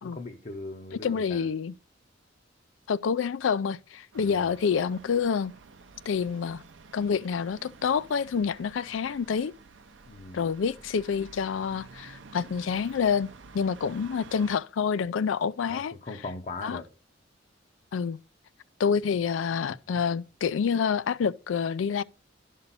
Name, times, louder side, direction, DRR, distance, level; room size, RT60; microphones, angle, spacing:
voice 1, 0.0-1.5 4.2-4.5 10.1-10.5 15.7-16.9, left 2 dB, 35° left, 0.7 m, -40 dB
voice 2, 0.9-1.7 2.9-5.5 6.1-6.6 6.9-9.5 10.3-13.3 13.5-15.9 16.6-16.8 17.9-18.2 18.8-22.0, left 6 dB, 80° left, 0.4 m, -27 dB
sound 1, 4.1-14.6, right 4 dB, 70° right, 0.6 m, -50 dB
11.5 x 5.6 x 4.0 m
head